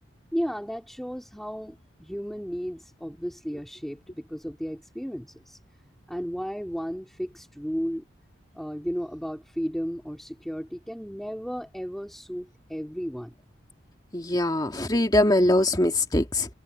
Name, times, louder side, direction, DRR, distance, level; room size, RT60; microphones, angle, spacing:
voice 1, 0.3-5.6 6.1-8.0 8.5-13.3, equal, ahead, 3.1 m, -34 dB
voice 2, 14.1-16.5, left 1 dB, 20° left, 2.0 m, -22 dB
head